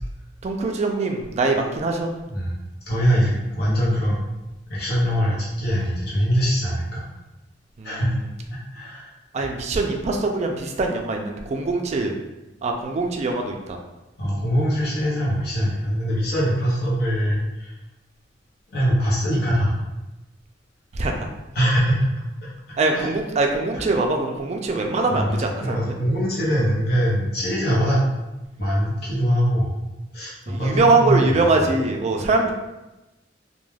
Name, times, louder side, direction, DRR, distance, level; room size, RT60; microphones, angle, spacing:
voice 1, 0.4-2.1 7.8-8.1 9.3-12.1 12.6-13.8 20.9-21.3 22.8-25.9 30.5-32.5, right 3 dB, 40° right, 3 dB, 0.3 m, -22 dB
voice 2, 2.3-2.6 2.9-4.2 4.7-7.0 7.8-8.2 8.7-9.1 9.4-9.5 14.2-17.7 18.7-19.7 21.5-22.0 22.9-23.1 25.1-25.3 25.6-28.0 28.6-29.8 30.1-31.5 32.2-32.3, equal, 60° left, -7 dB, 0.8 m, -22 dB
2.3 x 2.2 x 3.2 m, 1.0 s
head